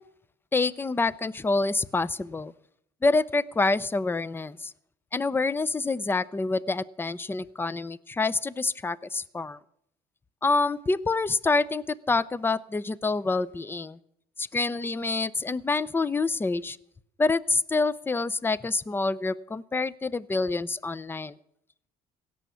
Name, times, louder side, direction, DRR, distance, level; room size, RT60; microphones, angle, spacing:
voice 1, 0.5-2.5 3.0-4.7 5.1-9.6 10.4-14.0 14.4-16.8 17.2-21.3, left 3 dB, 15° left, 20 dB, 0.5 m, -27 dB
17.0 x 6.9 x 9.5 m, 0.72 s
cardioid pair, 110°, 17 cm